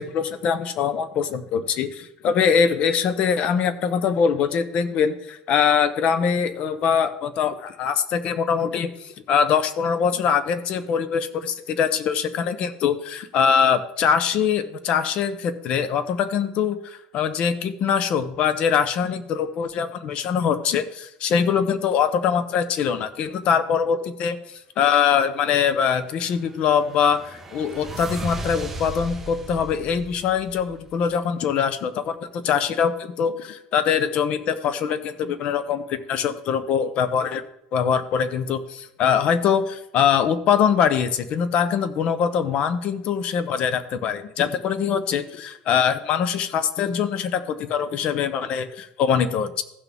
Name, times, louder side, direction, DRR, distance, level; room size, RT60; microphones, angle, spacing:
voice 1, 0.0-24.4 24.8-37.4 37.7-49.6, left 7 dB, 50° left, 13 dB, 0.8 m, -23 dB
sound 1, 26.2-31.2, right 2 dB, 10° right, 1.1 m, -36 dB
15.5 x 6.1 x 3.5 m, 0.81 s
cardioid pair, 140°, 2 cm